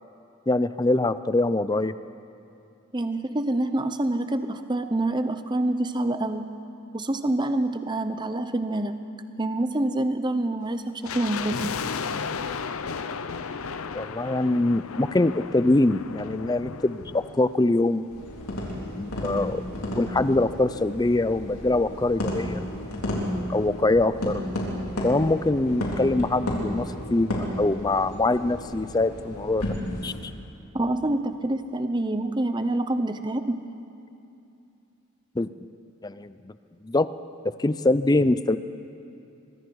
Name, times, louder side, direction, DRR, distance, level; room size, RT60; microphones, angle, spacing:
voice 1, 0.5-1.9 13.9-18.0 19.0-19.6 20.0-22.6 23.5-24.4 25.0-29.7 30.0-30.3 35.4-35.7 36.0-36.5 36.8-37.1 37.6-38.6, left 2 dB, 15° left, 13 dB, 0.4 m, -23 dB
voice 2, 2.9-6.5 6.9-9.0 9.4-11.7 30.7-33.6, right 1 dB, 20° right, 9 dB, 0.8 m, -26 dB
sound 1, 11.0-18.3 18.6-18.7 19.4-21.2 21.4-21.5 21.8-22.1 22.5-22.6, left 5 dB, 70° left, 0.6 m, -35 dB
sound 2, 18.1-30.2, left 1 dB, 85° left, 3.8 m, -32 dB
24.5 x 22.5 x 4.7 m, 2.7 s
head